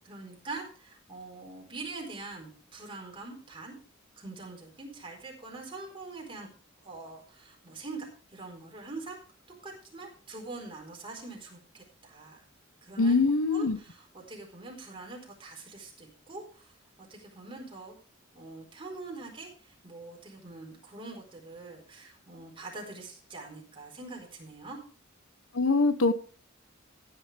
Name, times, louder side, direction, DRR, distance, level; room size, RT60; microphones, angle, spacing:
voice 1, 0.0-3.7 4.2-6.5 6.8-9.2 9.6-12.4 12.8-13.2 13.5-17.9 18.3-24.8, right 3 dB, 25° right, 0 dB, 4.4 m, -44 dB
voice 2, 13.0-13.8 25.5-26.1, left 3 dB, 85° left, 12 dB, 1.0 m, -23 dB
16.0 x 9.9 x 3.4 m, 0.38 s
head